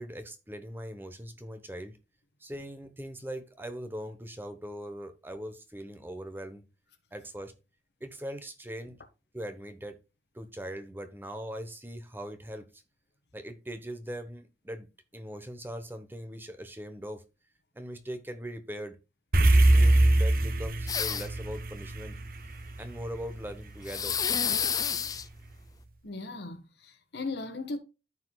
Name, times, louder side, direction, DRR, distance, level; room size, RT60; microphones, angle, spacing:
voice 1, 0.0-2.0 2.4-6.6 7.1-7.5 8.0-9.0 9.3-10.0 10.3-12.8 13.3-17.2 17.7-19.0 19.3-22.2 22.8-24.2, equal, 10° right, 0.9 m, -40 dB
sound 1, 19.3-23.8, right 1 dB, 55° right, 0.9 m, -23 dB
sound 2, 20.9-21.5 23.9-25.2, left 7 dB, 20° left, 0.4 m, -29 dB
voice 2, 26.0-27.8, left 3 dB, 75° left, 1.3 m, -37 dB
13.5 x 4.8 x 2.3 m
head